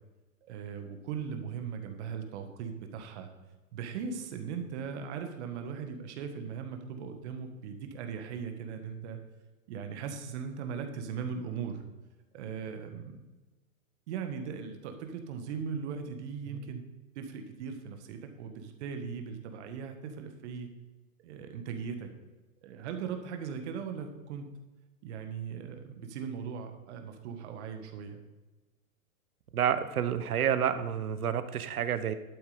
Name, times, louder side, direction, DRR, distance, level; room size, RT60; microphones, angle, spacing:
voice 1, 0.5-3.3 3.7-9.2 9.7-11.8 12.3-13.2 14.1-16.8 17.1-20.7 21.2-22.1 22.6-24.5 25.0-28.2, right 6 dB, 50° right, 6 dB, 1.6 m, -39 dB
voice 2, 29.5-32.1, right 9 dB, 80° right, 13 dB, 1.1 m, -29 dB
11.5 x 8.1 x 5.1 m, 1.2 s
hypercardioid pair, 125°, 44 cm